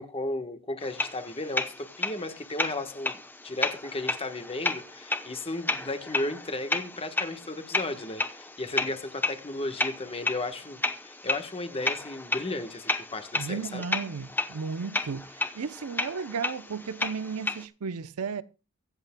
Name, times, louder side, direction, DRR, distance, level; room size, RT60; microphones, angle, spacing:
voice 1, 0.0-3.2 3.4-13.8, left 2 dB, 25° left, 1.2 m, -34 dB
sound 1, 0.8-17.6, left 2 dB, 10° left, 0.8 m, -33 dB
voice 2, 13.4-18.4, right 5 dB, 75° right, 0.6 m, -34 dB
23.5 x 8.2 x 2.2 m
head